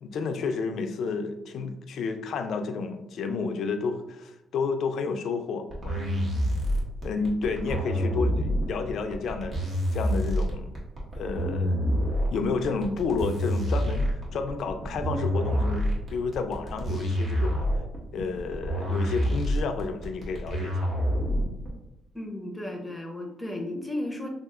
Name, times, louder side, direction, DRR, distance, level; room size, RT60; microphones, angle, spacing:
voice 1, 0.0-6.4 7.0-9.6 9.9-10.7 11.2-12.0 12.3-17.7 18.1-20.9, left 4 dB, 70° left, 6 dB, 0.4 m, -31 dB
sound 1, 5.7-21.7, equal, 45° right, 1.3 m, -27 dB
voice 2, 22.1-24.3, left 1 dB, 5° left, 1 dB, 0.8 m, -34 dB
5.7 x 2.4 x 2.4 m, 0.92 s
cardioid pair, 90°, 0 cm